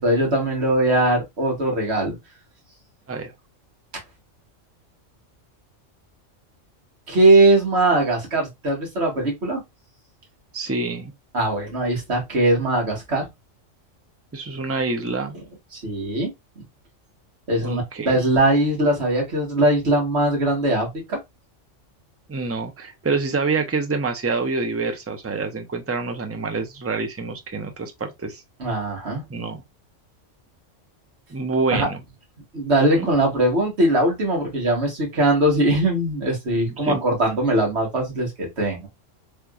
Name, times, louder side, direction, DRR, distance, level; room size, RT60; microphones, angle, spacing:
voice 1, 0.0-2.2 7.1-9.6 11.3-13.3 15.7-16.3 17.5-21.2 28.6-29.2 31.7-31.9 32.5-38.9, right 1 dB, 60° right, 1.7 m, -20 dB
voice 2, 10.5-11.1 14.3-15.3 17.6-18.2 22.3-28.4 29.3-29.6 31.3-32.0 32.9-33.1 36.8-37.0, right 4 dB, 25° right, 0.3 m, -26 dB
3.4 x 2.9 x 2.3 m
omnidirectional pair, 1.3 m